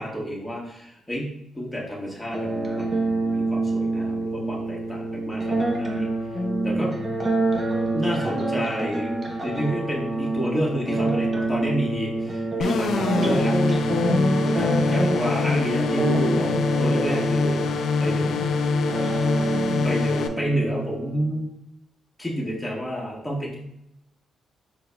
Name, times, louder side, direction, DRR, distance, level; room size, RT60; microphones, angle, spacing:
voice 1, 0.0-6.1 6.6-7.0 7.9-9.2 9.4-13.6 14.6-16.5 16.8-17.7 18.0-18.4 19.8-21.5 22.2-23.6, equal, ahead, -4 dB, 1.4 m, -29 dB
sound 1, 2.3-21.3, right 2 dB, 30° right, 0.7 m, -26 dB
voice 2, 6.3-7.1 14.0-15.2 19.3-19.9, left 1 dB, 20° left, -1 dB, 0.5 m, -30 dB
sound 2, 12.6-20.3, left 4 dB, 70° left, 0.4 m, -24 dB
4.9 x 3.7 x 2.3 m, 0.79 s
cardioid pair, 85°, 0 cm